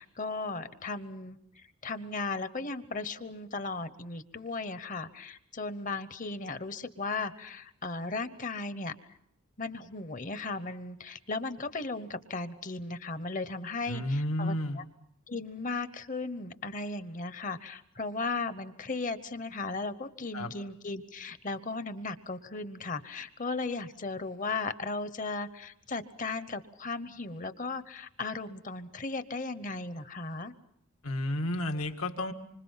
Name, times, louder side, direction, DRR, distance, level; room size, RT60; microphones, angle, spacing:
voice 1, 0.0-8.9 9.6-14.8 15.3-30.5, left 3 dB, 35° left, 12 dB, 0.9 m, -36 dB
voice 2, 13.9-14.8 20.3-20.5 31.0-32.3, left 1 dB, 80° left, 6 dB, 1.8 m, -31 dB
27.0 x 25.0 x 5.7 m, 0.72 s
head